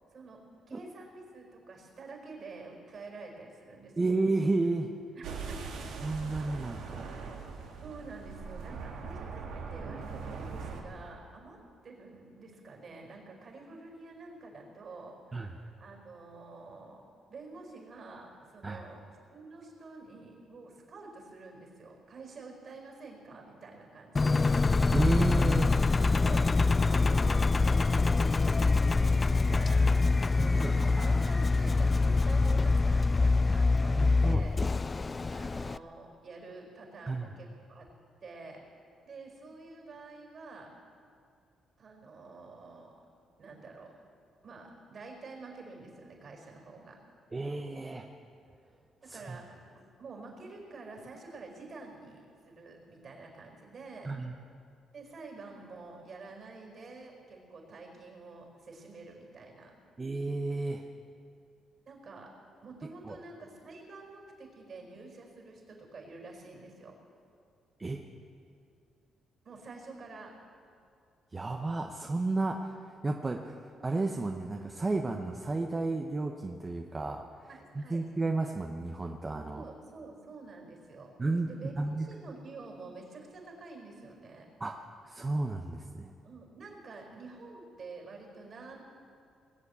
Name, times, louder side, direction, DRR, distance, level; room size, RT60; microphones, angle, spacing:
voice 1, 0.7-3.9 5.1-5.6 7.8-11.6 11.8-17.0 17.3-24.4 26.2-26.6 26.9-34.6 35.3-37.9 38.2-38.6 39.0-40.7 41.8-42.9 43.4-43.9 44.4-47.0 49.0-54.1 54.9-59.7 61.8-62.3 62.6-67.0 69.4-70.3 77.5-78.0 79.5-81.1 81.5-84.5 86.2-88.8, right 3 dB, 50° right, 1 dB, 4.7 m, -48 dB
voice 2, 4.0-4.9 6.0-7.2 15.3-15.5 18.6-18.8 24.9-25.8 30.4-31.2 33.9-34.4 37.1-37.3 47.3-48.1 49.1-49.4 54.0-54.3 60.0-60.8 63.0-63.2 67.8-68.0 71.3-77.5 77.7-79.6 81.2-81.5 81.8-82.1 84.6-84.7 85.0-86.1, right 2 dB, 25° right, 3 dB, 0.9 m, -32 dB
sound 1, 5.2-10.8, right 5 dB, 85° right, 2.0 m, -41 dB
Engine, 24.2-35.8, left 3 dB, 30° left, 0.3 m, -25 dB
20.5 x 8.2 x 8.3 m, 2.4 s
cardioid pair, 90°, 0 cm